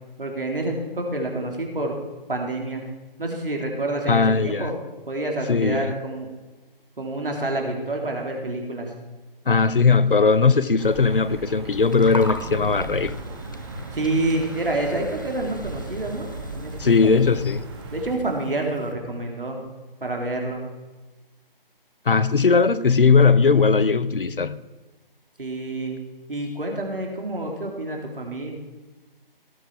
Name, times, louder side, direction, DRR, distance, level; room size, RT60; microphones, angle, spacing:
voice 1, 0.2-2.0 2.3-2.9 3.2-4.8 5.1-6.3 7.0-8.9 13.9-16.3 16.6-17.1 17.9-19.7 20.0-20.6 25.4-26.0 26.3-28.5, right 2 dB, 65° right, 3.6 m, -28 dB
voice 2, 4.1-4.7 5.5-6.0 9.5-13.1 16.8-17.6 22.1-24.6, left 4 dB, 65° left, 0.8 m, -19 dB
sound 1, 10.8-18.2, right 3 dB, 30° right, 1.6 m, -36 dB
Gurgling, 11.7-18.9, left 2 dB, 20° left, 0.5 m, -39 dB
18.0 x 7.7 x 4.9 m
figure-of-eight pair, 155°, 29 cm